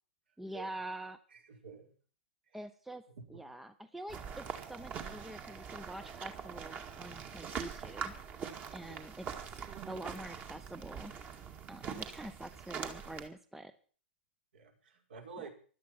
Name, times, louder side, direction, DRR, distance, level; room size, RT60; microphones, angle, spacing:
voice 1, 0.4-1.2 2.5-8.1 8.7-9.3 9.9-11.1 11.7-13.7 15.4-15.5, right 1 dB, 5° right, 12 dB, 0.8 m, -46 dB
voice 2, 1.3-1.9 2.5-2.6 3.1-3.4 8.9-9.1 14.5-15.5, right 5 dB, 65° right, 2 dB, 5.5 m, -50 dB
sound 1, 4.1-13.3, right 7 dB, 25° right, 2.0 m, -43 dB
17.0 x 12.5 x 5.8 m, 0.43 s
figure-of-eight pair, 115°, 6 cm